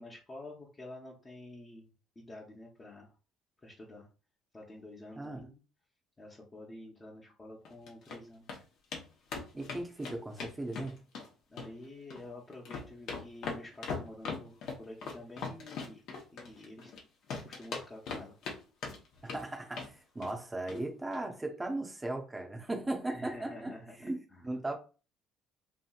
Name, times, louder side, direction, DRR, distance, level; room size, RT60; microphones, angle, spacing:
voice 1, 0.0-1.9 2.2-3.1 3.6-4.1 4.5-5.6 6.2-8.6 11.5-16.0 16.3-16.9 17.4-18.4 23.1-24.5, left 1 dB, 25° left, 0.8 m, -49 dB
voice 2, 5.2-5.5 9.5-11.0 19.2-23.7 24.0-24.7, right 2 dB, 15° right, 0.7 m, -37 dB
sound 1, 7.6-8.2 8.5-8.6 8.9-9.0 9.3-11.3 11.6-12.2 12.5-17.0 17.3-18.6 18.8-19.4 19.7-19.9 20.2-20.4 20.7-20.8 21.1-21.2, left 4 dB, 70° left, 0.8 m, -40 dB
2.9 x 2.7 x 2.3 m
supercardioid pair, 90°, 0 cm